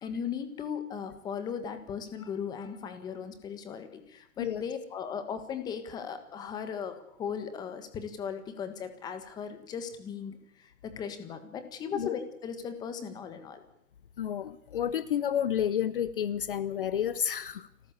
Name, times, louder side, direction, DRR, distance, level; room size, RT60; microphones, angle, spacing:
voice 1, 0.0-13.6, left 7 dB, 10° left, 9 dB, 1.5 m, -37 dB
voice 2, 14.2-17.7, left 9 dB, 40° left, 16 dB, 0.8 m, -30 dB
29.5 x 14.0 x 8.2 m, 0.76 s
hypercardioid pair, 165°, 42 cm